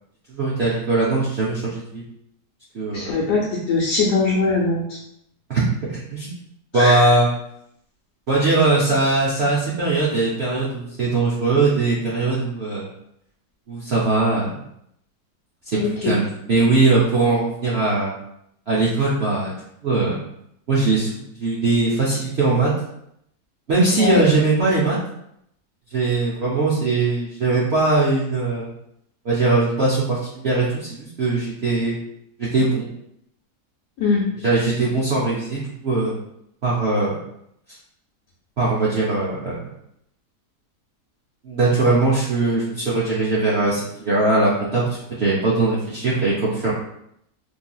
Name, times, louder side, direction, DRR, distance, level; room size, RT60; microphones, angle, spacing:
voice 1, 0.3-2.0 2.7-3.3 5.5-6.3 6.7-7.3 8.3-12.9 13.7-14.6 15.7-18.1 18.7-19.5 19.8-20.2 20.7-22.7 23.7-25.0 25.9-28.7 29.2-32.0 32.4-32.9 34.4-36.2 36.6-37.2 38.6-39.7 41.4-46.7, right 3 dB, 60° right, -7 dB, 0.7 m, -20 dB
voice 2, 2.9-3.4 3.7-4.8 6.7-7.0 15.8-16.2 24.0-24.2 34.0-34.2, left 3 dB, 85° left, -6 dB, 1.2 m, -21 dB
3.1 x 2.6 x 2.2 m, 0.76 s
omnidirectional pair, 1.7 m